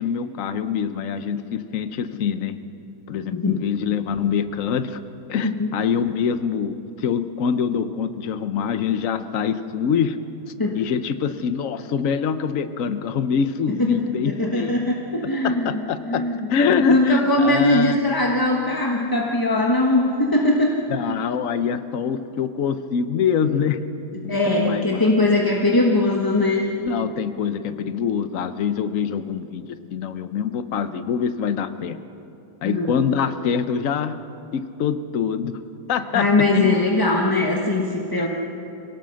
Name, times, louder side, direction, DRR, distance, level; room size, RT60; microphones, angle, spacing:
voice 1, 0.0-2.6 3.1-5.0 5.3-10.2 10.7-14.8 15.2-16.2 16.5-18.0 20.9-23.8 24.2-25.1 26.8-32.0 32.6-34.2 34.5-35.6 35.9-36.8 38.2-38.3, left 7 dB, 55° left, 11 dB, 1.0 m, -25 dB
voice 2, 3.3-3.6 5.4-5.7 10.6-10.8 13.8-20.7 21.1-21.2 24.3-26.7 32.6-32.9 36.1-38.3, left 2 dB, 15° left, -1 dB, 1.0 m, -21 dB
25.5 x 17.5 x 6.4 m, 2.8 s
omnidirectional pair, 2.0 m